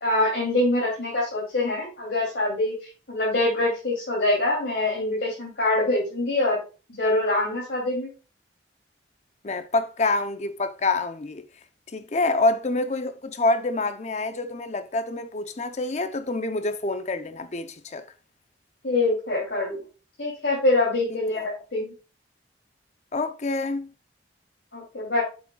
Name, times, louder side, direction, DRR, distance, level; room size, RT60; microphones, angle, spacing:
voice 1, 0.0-6.6 7.0-8.1 18.8-19.8 20.2-21.9 24.7-25.2, left 2 dB, 90° left, 2.8 m, -24 dB
voice 2, 9.4-11.4 11.9-18.0 21.4-21.5 23.1-23.9, left 2 dB, 40° left, 0.6 m, -26 dB
7.9 x 7.0 x 2.3 m
head